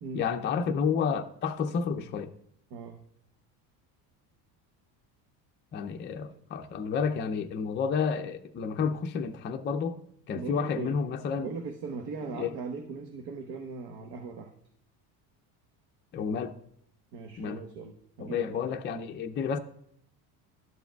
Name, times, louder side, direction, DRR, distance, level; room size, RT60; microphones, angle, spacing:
voice 1, 0.1-2.3 5.7-10.0 10.3-11.5 12.4-12.5 16.1-16.5 17.4-17.6 18.2-19.6, left 6 dB, 25° left, 0.5 m, -30 dB
voice 2, 10.3-11.0 11.4-14.5 17.1-18.6, right 4 dB, 60° right, 1.1 m, -39 dB
12.0 x 6.9 x 2.3 m
supercardioid pair, 110°, 45 cm